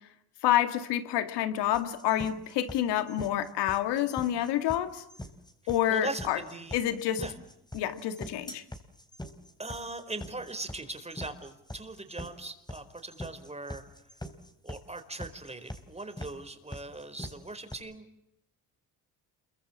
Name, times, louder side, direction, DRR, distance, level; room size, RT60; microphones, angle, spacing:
voice 1, 0.4-5.0 5.7-6.4 6.7-7.2 7.7-8.6, left 12 dB, 85° left, 9 dB, 2.2 m, -28 dB
sound 1, 1.7-17.7, left 1 dB, 10° left, 3.7 m, -43 dB
voice 2, 5.9-6.8 7.2-7.3 9.6-14.1 14.6-18.1, right 2 dB, 15° right, 8 dB, 4.5 m, -40 dB
28.0 x 23.5 x 7.3 m, 0.84 s
supercardioid pair, 75°, 40 cm